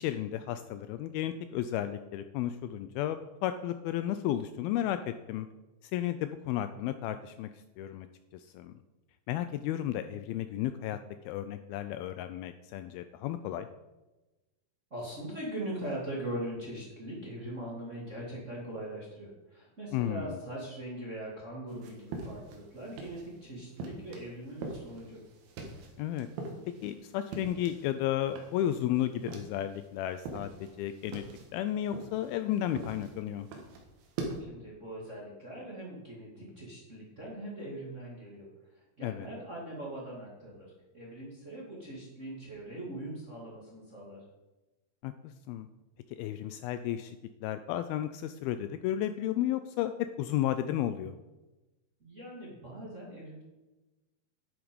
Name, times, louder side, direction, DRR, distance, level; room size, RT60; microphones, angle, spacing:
voice 1, 0.0-5.5 5.8-7.5 7.8-8.1 8.3-8.7 9.3-11.0 11.3-13.7 19.9-20.4 26.0-26.3 26.8-31.2 31.5-33.5 39.0-39.3 45.0-45.7 46.1-47.2 47.4-51.2, left 12 dB, 80° left, 10 dB, 2.2 m, -33 dB
voice 2, 14.9-25.2 34.4-38.5 38.7-40.7 40.9-44.2 52.0-53.4, right 1 dB, 25° right, -4 dB, 1.8 m, -41 dB
sound 1, 21.7-23.4 23.8-27.9 28.2-29.9 30.2-34.4, right 3 dB, 75° right, 3.4 m, -43 dB
11.0 x 7.9 x 5.3 m, 1.1 s
omnidirectional pair, 4.6 m